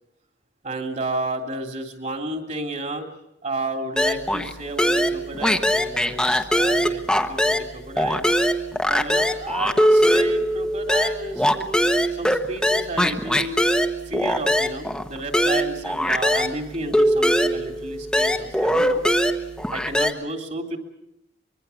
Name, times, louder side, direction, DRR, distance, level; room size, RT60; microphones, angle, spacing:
voice 1, 0.6-3.1 3.4-8.3 8.8-13.6 14.0-19.0 19.7-20.8, right 2 dB, 45° right, 3 dB, 3.1 m, -32 dB
sound 1, 4.0-4.5 4.8-7.7 8.0-16.6 16.9-20.1, equal, 5° left, 1.2 m, -21 dB
24.5 x 22.0 x 7.1 m, 0.85 s
head